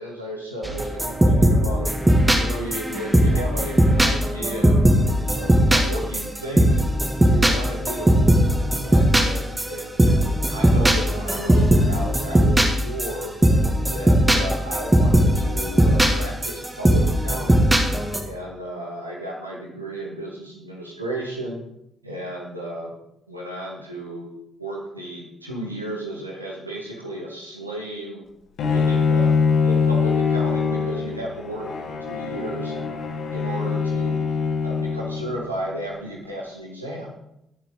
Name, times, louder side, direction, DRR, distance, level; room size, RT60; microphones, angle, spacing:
voice 1, 0.0-1.9 2.4-4.8 5.3-6.8 7.2-8.3 8.8-13.3 13.8-17.7 18.2-21.6 22.0-22.9 23.3-24.3 24.6-28.2 28.7-29.3 29.6-32.8 33.3-34.2 34.6-37.2, right 1 dB, 85° right, -3 dB, 1.9 m, -34 dB
sound 1, 0.6-18.2, right 1 dB, 15° right, 2.2 m, -19 dB
Bowed string instrument, 28.6-35.6, left 5 dB, 55° left, 1.9 m, -23 dB
18.0 x 7.4 x 4.0 m, 0.82 s
figure-of-eight pair, 40°, 0 cm